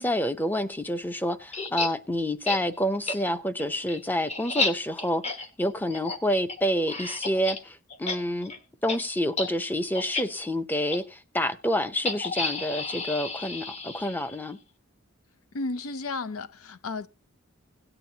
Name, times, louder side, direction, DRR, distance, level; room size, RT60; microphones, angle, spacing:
voice 1, 0.0-8.5 8.8-14.6, equal, 10° left, 0.6 m, -28 dB
sound 1, 1.5-1.9 2.4-2.6 3.1-3.2 3.6-7.6 7.9-8.2 8.4-8.6 8.9-9.0 9.3-9.5 9.9-10.2 10.9-11.0 12.0-14.4, left 3 dB, 30° left, 1.1 m, -31 dB
voice 2, 15.5-17.1, left 3 dB, 80° left, 0.6 m, -33 dB
17.0 x 9.0 x 2.8 m
head